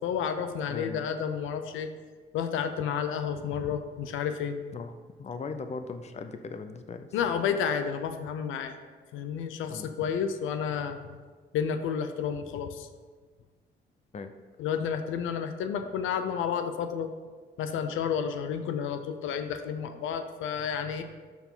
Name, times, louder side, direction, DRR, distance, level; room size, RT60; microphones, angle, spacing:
voice 1, 0.0-1.9 2.3-4.6 7.1-8.7 9.1-11.0 11.5-12.9 14.6-17.1 17.6-21.0, left 7 dB, 85° left, 8 dB, 0.7 m, -31 dB
voice 2, 0.7-1.1 4.7-4.9 5.2-7.1 9.7-9.9 14.1-14.3, left 4 dB, 35° left, 8 dB, 0.6 m, -38 dB
12.5 x 4.9 x 3.8 m, 1.5 s
cardioid pair, 90°, 20 cm